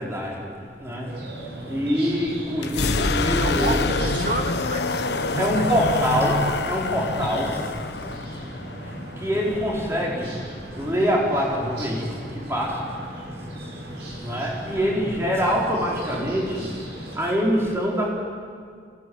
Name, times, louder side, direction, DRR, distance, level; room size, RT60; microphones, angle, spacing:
voice 1, 0.0-4.0 5.3-8.1 8.7-10.4 10.7-12.9 13.5-13.9 14.2-16.8 17.1-18.1, equal, 15° right, -3 dB, 4.6 m, -25 dB
sound 1, 1.1-17.2, right 1 dB, 75° right, 6.7 m, -37 dB
sound 2, 2.6-10.3, left 3 dB, 70° left, 1.0 m, -27 dB
voice 2, 3.4-5.9, right 2 dB, 50° right, 3 dB, 2.4 m, -30 dB
27.5 x 17.5 x 9.7 m, 2.1 s
head